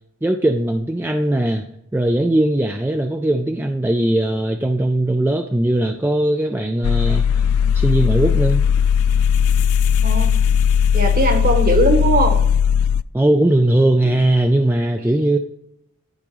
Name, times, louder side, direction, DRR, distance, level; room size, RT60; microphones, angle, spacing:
voice 1, 0.2-1.7 1.9-7.5 7.7-8.6 13.1-15.4, right 1 dB, 10° right, 5 dB, 0.3 m, -19 dB
sound 1, 6.8-13.0, left 8 dB, 80° left, 0.3 m, -17 dB
voice 2, 10.0-10.3 10.9-12.4 14.0-14.1, right 1 dB, 40° right, 5 dB, 1.3 m, -19 dB
12.0 x 5.1 x 3.1 m, 0.76 s
head